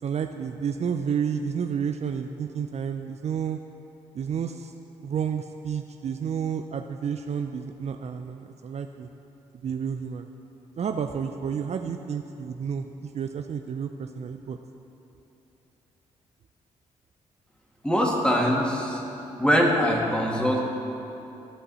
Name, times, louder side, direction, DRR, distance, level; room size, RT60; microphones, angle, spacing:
voice 1, 0.0-3.6 4.1-4.7 5.0-9.1 9.6-10.3 10.8-14.6, right 7 dB, 50° right, 6 dB, 0.5 m, -30 dB
voice 2, 17.8-19.0 19.4-20.6, equal, 5° left, -2 dB, 2.2 m, -22 dB
15.5 x 5.5 x 4.2 m, 2.9 s
supercardioid pair, 50°, 14 cm